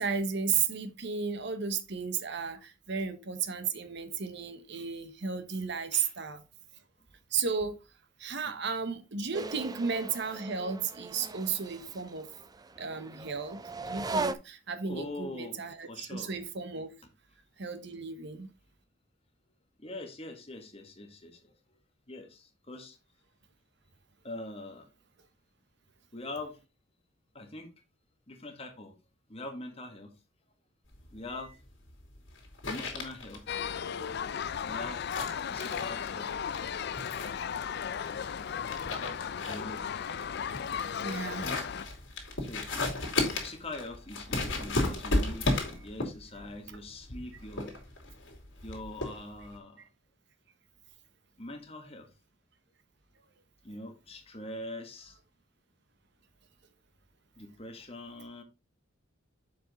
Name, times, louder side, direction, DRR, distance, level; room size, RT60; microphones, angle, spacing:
voice 1, 0.0-6.4 7.3-7.8 8.2-12.3 12.8-16.9 17.6-18.5 41.0-41.4, right 6 dB, 60° right, 1.1 m, -34 dB
sound 1, 9.3-14.3, right 3 dB, 20° right, 0.5 m, -38 dB
voice 2, 14.9-16.3 19.8-21.6 22.1-23.0 24.2-24.9 26.1-26.6 27.3-27.7 28.3-29.0 29.3-30.1 31.1-31.6 32.3-32.4 32.6-33.5 34.6-36.3 39.4-40.2 41.2-41.6 42.4-47.7 48.6-49.8 51.4-52.1 53.6-55.2 57.4-58.4, left 2 dB, 30° left, 1.7 m, -43 dB
sound 2, 30.9-49.6, left 2 dB, 75° left, 2.7 m, -35 dB
sound 3, 33.5-41.9, left 7 dB, 55° left, 0.4 m, -35 dB
7.2 x 5.2 x 4.1 m
head